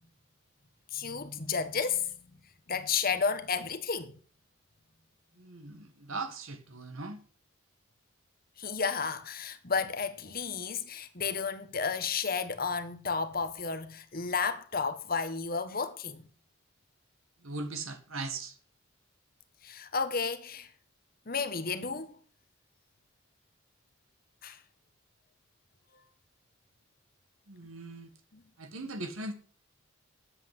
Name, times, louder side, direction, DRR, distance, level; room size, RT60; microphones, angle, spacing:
voice 1, 0.9-2.2 2.7-4.1 8.6-16.2 19.6-20.7 21.3-22.1 24.4-24.6, left 5 dB, 45° left, 1.4 m, -32 dB
voice 2, 5.4-7.2 17.4-18.5 27.5-28.1 28.6-29.3, right 3 dB, 80° right, 1.7 m, -39 dB
10.0 x 8.2 x 7.8 m
head